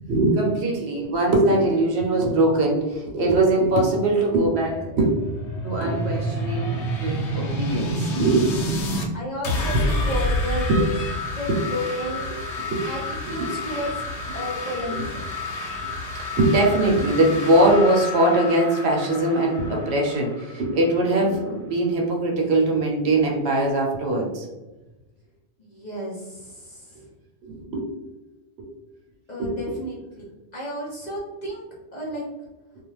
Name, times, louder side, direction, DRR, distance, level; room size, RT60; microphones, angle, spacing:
voice 1, 0.1-5.1 5.6-6.7 7.0-8.5 9.7-9.8 10.7-10.8 11.5-11.6 12.6-12.9 13.4-13.5 14.9-15.0 16.1-24.5 27.4-27.9 28.6-28.7 29.4-29.6, right 2 dB, 65° right, 0 dB, 0.9 m, -21 dB
sound 1, 4.5-9.1 9.4-21.0, left 1 dB, 75° left, 0.9 m, -29 dB
voice 2, 9.1-10.9 11.4-12.2 12.8-14.0 14.3-15.3 25.6-27.0 29.3-30.3 30.5-31.6 31.9-32.3, left 1 dB, 45° left, -5 dB, 0.7 m, -32 dB
2.3 x 2.3 x 3.0 m, 1.1 s
omnidirectional pair, 1.2 m